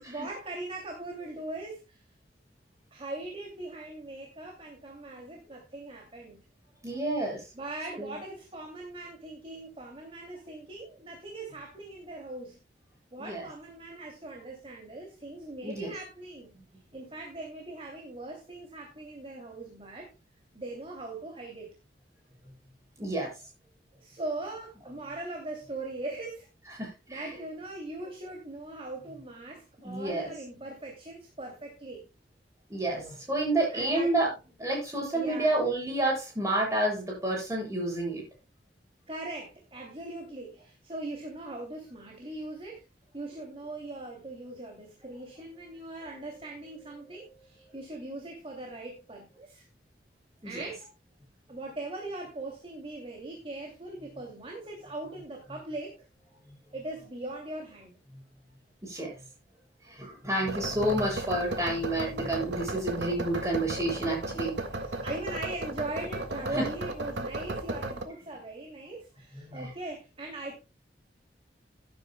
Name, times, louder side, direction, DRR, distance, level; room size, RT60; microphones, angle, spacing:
voice 1, 0.1-2.0 2.9-6.4 7.5-12.6 13.1-16.5 16.9-20.1 20.5-21.7 24.0-26.5 27.1-32.1 33.7-34.1 35.1-35.6 39.1-42.8 43.1-49.7 50.4-50.8 51.5-56.0 56.7-57.9 64.7-70.6, right 2 dB, 35° right, 1 dB, 2.7 m, -40 dB
voice 2, 6.8-7.4 8.0-8.2 13.2-13.4 15.6-15.9 23.0-23.3 26.8-27.3 29.8-30.3 32.7-34.3 34.6-38.2 50.4-50.6 58.8-59.1 59.8-64.5 66.5-66.7 69.5-69.7, right 1 dB, 15° right, -2 dB, 7.4 m, -29 dB
sound 1, 60.5-68.0, right 2 dB, 90° right, 1.7 m, -35 dB
17.0 x 9.6 x 2.2 m, 0.28 s
head